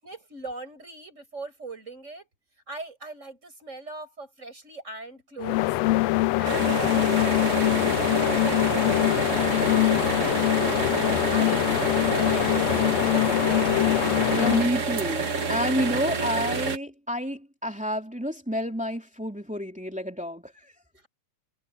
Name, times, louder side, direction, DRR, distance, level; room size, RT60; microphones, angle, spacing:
voice 1, 0.0-2.3 2.7-5.6 6.4-10.1 10.9-11.7 12.0-13.7, right 3 dB, 20° right, 7.2 m, -40 dB
sound 1, 5.4-14.7, left 18 dB, 80° left, 1.5 m, -23 dB
sound 2, 6.4-16.8, right 4 dB, 50° right, 0.9 m, -28 dB
voice 2, 14.3-20.5, equal, 5° right, 2.4 m, -29 dB
omnidirectional pair, 3.5 m